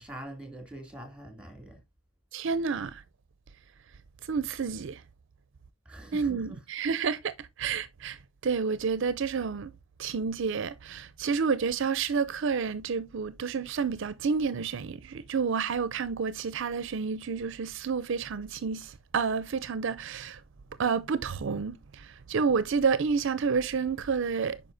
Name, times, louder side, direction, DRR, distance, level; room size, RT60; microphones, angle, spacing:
voice 1, 0.0-1.8 5.9-6.6, right 1 dB, 5° right, 2.5 m, -44 dB
voice 2, 2.3-3.0 4.3-5.0 6.1-9.7 10.0-20.4 20.8-24.6, right 5 dB, 65° right, 0.5 m, -30 dB
9.1 x 5.5 x 2.6 m
head